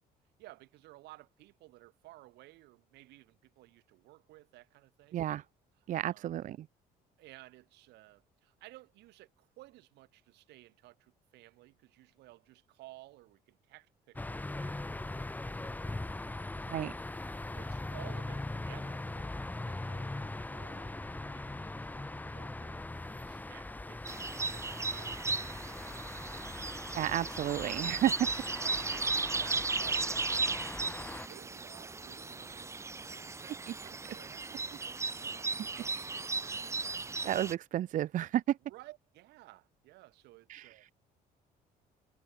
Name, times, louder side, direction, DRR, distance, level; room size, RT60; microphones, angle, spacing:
voice 1, 0.4-5.2 6.0-6.4 7.2-16.1 17.5-26.1 28.6-34.8 35.2-36.7 38.6-40.8, right 19 dB, 85° right, 6.7 m, -56 dB
voice 2, 5.1-5.4 5.9-6.7 16.7-16.9 26.9-28.3 37.2-38.6 40.5-40.7, right 12 dB, 50° right, 0.5 m, -31 dB
sound 1, 14.2-31.3, left 2 dB, 10° left, 1.3 m, -41 dB
sound 2, 24.1-37.5, right 4 dB, 15° right, 0.7 m, -36 dB
cardioid pair, 110°, 17 cm